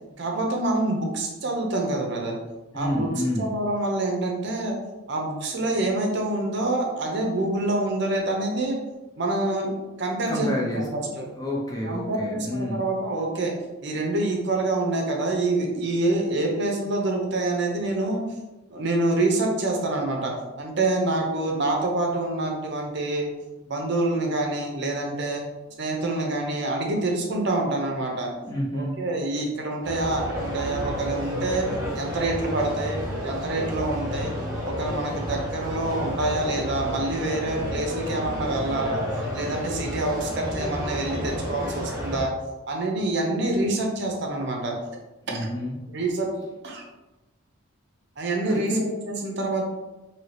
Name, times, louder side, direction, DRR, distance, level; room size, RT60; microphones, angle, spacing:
voice 1, 0.2-2.4 2.7-3.1 3.4-4.7 5.1-8.8 9.2-11.3 11.8-13.5 13.8-18.2 18.7-23.3 23.7-25.4 25.8-28.3 28.7-31.7 31.9-34.3 34.6-39.0 39.3-42.3 42.7-44.7 45.3-45.5 45.9-46.3 46.6-46.8 48.2-49.7, right 2 dB, 55° right, 1 dB, 0.6 m, -26 dB
voice 2, 2.7-3.5 10.3-10.9 11.4-12.9 28.4-28.9 45.3-45.7 48.5-48.8, equal, 15° left, -3 dB, 0.5 m, -29 dB
sound 1, 29.8-42.2, equal, 15° right, 0.8 m, -31 dB
2.7 x 2.7 x 3.2 m, 1.1 s
head